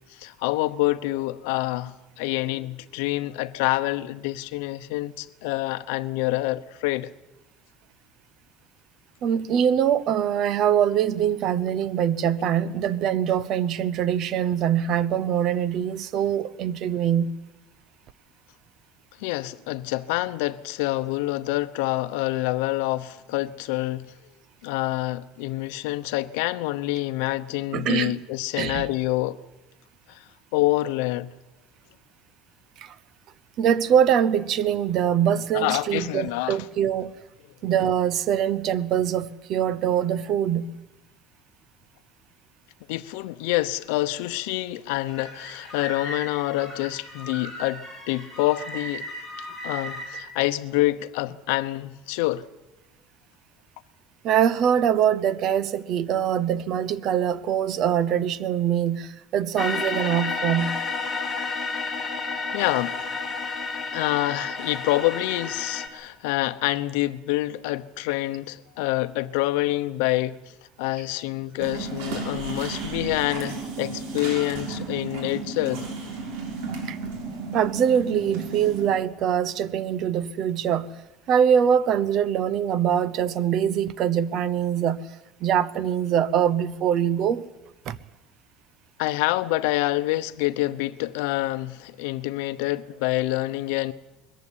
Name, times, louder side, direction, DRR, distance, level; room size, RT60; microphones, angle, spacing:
voice 1, 0.1-7.1 19.2-24.1 24.6-29.4 30.1-30.2 30.5-31.3 35.5-36.6 42.9-49.1 49.6-52.4 62.5-63.0 63.9-75.8 89.0-93.9, left 18 dB, 80° left, 0.9 m, -27 dB
voice 2, 9.2-17.3 27.7-28.2 28.6-28.9 32.8-32.9 33.6-37.1 37.6-40.8 54.2-60.8 76.9-77.0 77.5-81.0 81.3-85.1 85.4-87.5 87.9-88.0, right 9 dB, 40° right, 0.8 m, -23 dB
sound 1, 45.1-50.2, left 1 dB, 10° right, 5.2 m, -37 dB
sound 2, 59.6-65.9, left 4 dB, 15° left, 1.9 m, -30 dB
sound 3, 71.6-78.9, right 4 dB, 80° right, 6.3 m, -33 dB
21.0 x 14.5 x 9.9 m
cardioid pair, 175°, 0 cm